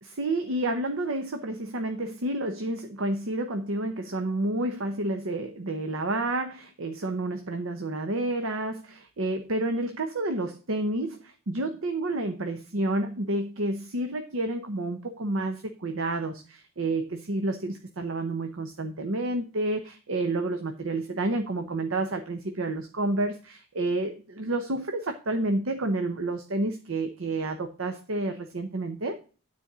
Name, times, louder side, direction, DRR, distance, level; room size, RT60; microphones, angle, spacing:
voice 1, 0.0-29.2, right 2 dB, 65° right, 6 dB, 0.9 m, -30 dB
9.7 x 4.3 x 6.1 m, 0.37 s
head